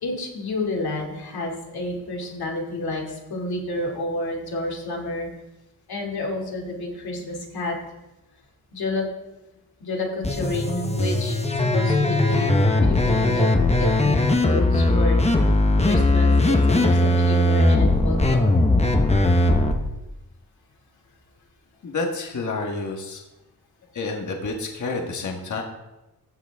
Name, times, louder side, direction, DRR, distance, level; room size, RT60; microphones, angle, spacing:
voice 1, 0.0-5.3 5.9-7.8 8.7-9.1 9.8-12.5 12.8-13.5 13.8-15.2 15.9-18.6, left 2 dB, 80° left, -1 dB, 2.7 m, -30 dB
sound 1, 10.2-19.7, left 2 dB, 15° left, 0.9 m, -19 dB
voice 2, 21.8-23.2 23.9-25.6, left 3 dB, 50° left, 1 dB, 1.5 m, -29 dB
15.0 x 8.0 x 3.5 m, 1.0 s
wide cardioid pair, 125°, 37 cm